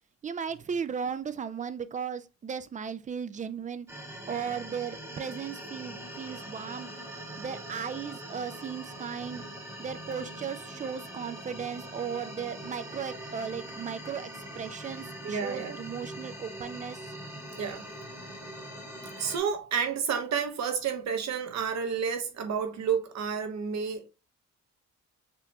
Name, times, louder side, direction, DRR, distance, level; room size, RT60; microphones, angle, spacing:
voice 1, 0.2-3.9 4.3-6.9 7.4-9.4 9.8-17.0, right 7 dB, 25° right, 0.4 m, -36 dB
sound 1, 3.9-19.4, right 1 dB, 10° right, 1.1 m, -42 dB
voice 2, 15.2-15.8 17.6-17.9 19.2-24.1, right 7 dB, 65° right, 1.0 m, -30 dB
6.7 x 2.9 x 2.3 m
cardioid pair, 140°, 30 cm